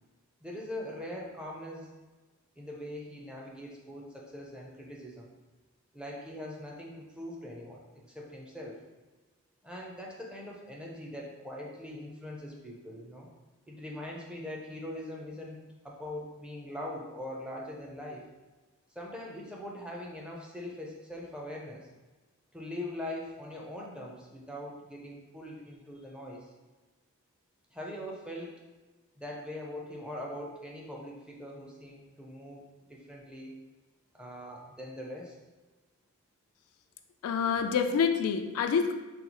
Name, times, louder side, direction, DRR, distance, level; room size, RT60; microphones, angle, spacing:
voice 1, 0.4-1.9 2.6-5.3 5.9-8.8 9.6-13.3 13.7-15.6 15.8-18.2 18.9-21.9 22.5-26.5 27.7-28.6 29.2-33.6 34.1-35.4, left 1 dB, 5° right, -2 dB, 0.5 m, -42 dB
voice 2, 37.2-38.9, left 6 dB, 85° left, 6 dB, 0.3 m, -27 dB
4.1 x 2.3 x 2.9 m, 1.2 s
head